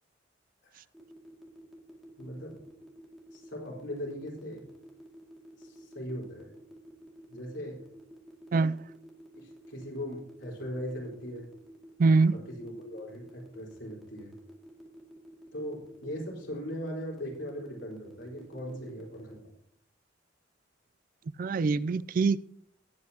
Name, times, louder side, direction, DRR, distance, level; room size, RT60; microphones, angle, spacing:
sound 1, 0.9-19.4, equal, ahead, 2.2 m, -50 dB
voice 1, 2.2-2.5 3.3-4.6 5.6-6.5 7.3-7.8 9.4-11.5 12.3-14.3 15.5-19.4, equal, 80° left, 4.0 m, -39 dB
voice 2, 12.0-12.4 21.4-22.4, right 4 dB, 50° right, 0.3 m, -24 dB
19.0 x 8.4 x 2.8 m
head